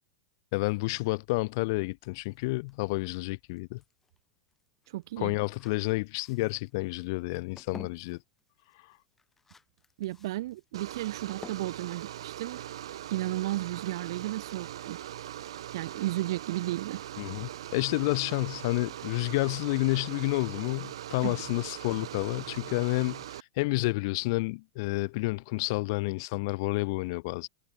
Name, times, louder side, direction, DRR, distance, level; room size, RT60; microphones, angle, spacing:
voice 1, 0.5-3.8 5.2-8.2 17.2-23.2 23.6-27.5, left 24 dB, 50° left, 1.3 m, -30 dB
sound 1, 2.3-13.2, left 4 dB, 10° left, 4.5 m, -54 dB
voice 2, 4.9-5.3 10.0-12.6 13.1-15.0 15.7-17.0 21.2-21.3, right 16 dB, 60° right, 5.1 m, -33 dB
sound 2, 10.7-23.4, right 12 dB, 80° right, 2.2 m, -41 dB
supercardioid pair, 160°, 3 cm